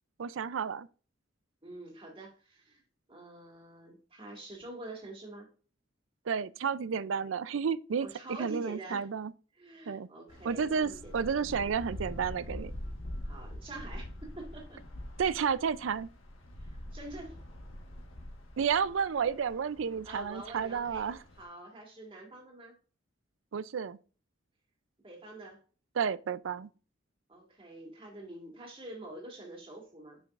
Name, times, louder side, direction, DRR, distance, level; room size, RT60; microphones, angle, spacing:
voice 1, 0.2-0.9 6.3-8.1 8.4-9.3 9.9-10.1 10.4-12.7 15.2-16.1 18.6-21.2 23.5-24.0 26.0-26.7, right 6 dB, 75° right, 0.4 m, -31 dB
voice 2, 1.6-2.8 3.1-5.5 8.0-9.1 9.5-11.1 13.2-14.8 16.6-17.4 20.0-22.7 25.0-25.6 27.3-30.2, right 2 dB, 25° right, 1.9 m, -46 dB
sound 1, 10.3-21.4, left 1 dB, 85° left, 1.3 m, -45 dB
7.0 x 5.6 x 2.4 m
head